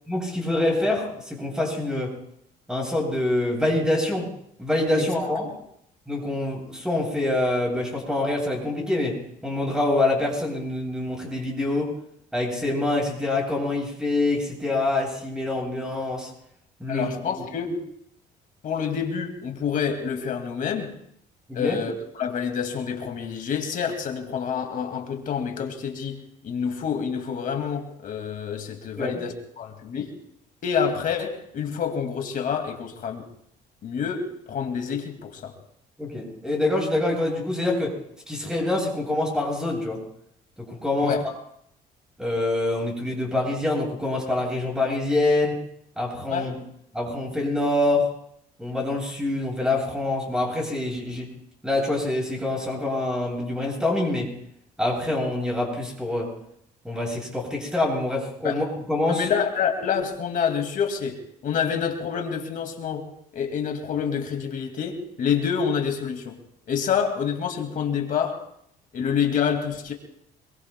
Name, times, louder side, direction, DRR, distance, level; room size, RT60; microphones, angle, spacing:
voice 1, 0.1-2.1 2.7-4.3 4.6-5.5 6.1-11.9 12.3-16.3 16.8-17.1 21.5-21.8 29.0-29.2 36.0-38.0 38.3-40.0 40.6-41.1 42.2-45.6 46.0-46.5 46.9-48.1 48.6-51.3 51.6-54.3 54.8-56.3 56.8-59.3, left 2 dB, 5° right, 7.7 m, -25 dB
voice 2, 16.9-17.8 18.6-20.9 21.5-30.2 30.6-33.3 33.8-35.5 41.0-41.2 46.3-46.5 58.4-58.6 59.1-66.4 66.7-68.4 68.9-69.9, left 7 dB, 55° left, 2.2 m, -27 dB
26.5 x 22.0 x 2.2 m
cardioid pair, 110°, 17 cm